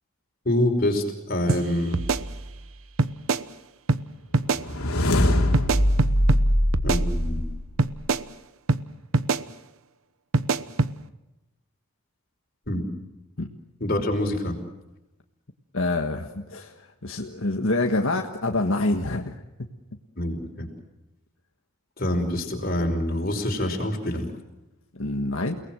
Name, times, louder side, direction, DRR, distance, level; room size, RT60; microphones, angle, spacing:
voice 1, 0.4-2.0 6.8-7.5 12.7-12.8 13.8-14.6 20.2-20.7 22.0-24.3, left 1 dB, 45° left, 3 dB, 5.1 m, -26 dB
sound 1, 1.5-1.6 1.9-2.7 3.0-3.4 3.9-4.0 4.3-4.6 5.5-6.4 6.7-7.5 7.8-8.2 8.7-8.8 9.1-9.4 10.3-10.9, right 3 dB, 75° right, 1.0 m, -24 dB
sound 2, 4.5-7.8, equal, 85° left, 3.1 m, -22 dB
voice 2, 15.7-19.4 25.0-25.5, left 2 dB, 65° left, 3 dB, 1.6 m, -26 dB
29.5 x 19.5 x 7.7 m, 0.97 s
head